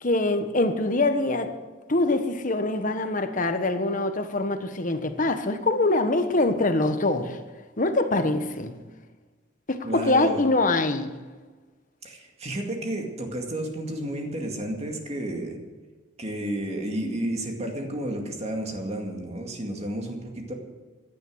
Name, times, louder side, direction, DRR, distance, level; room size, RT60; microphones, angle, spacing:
voice 1, 0.0-1.6 1.9-7.4 7.8-8.7 9.7-11.1, left 2 dB, 40° left, 1.3 m, -24 dB
voice 2, 9.8-10.4 12.0-15.6 16.2-20.5, right 1 dB, 35° right, 2.2 m, -31 dB
16.5 x 11.5 x 6.4 m
head